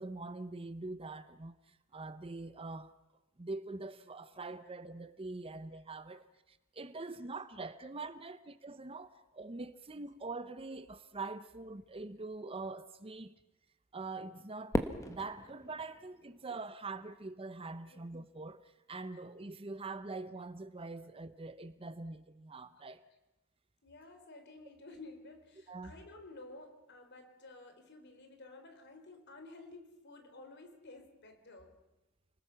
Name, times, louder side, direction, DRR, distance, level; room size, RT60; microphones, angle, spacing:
voice 1, 0.0-2.9 3.4-13.3 13.9-14.8 15.1-23.0 25.7-26.0, right 3 dB, 25° right, 0.7 m, -44 dB
Fireworks, 14.7-17.0, equal, 15° left, 1.3 m, -38 dB
voice 2, 23.8-31.8, left 2 dB, 50° left, 3.5 m, -53 dB
29.0 x 20.0 x 5.8 m
head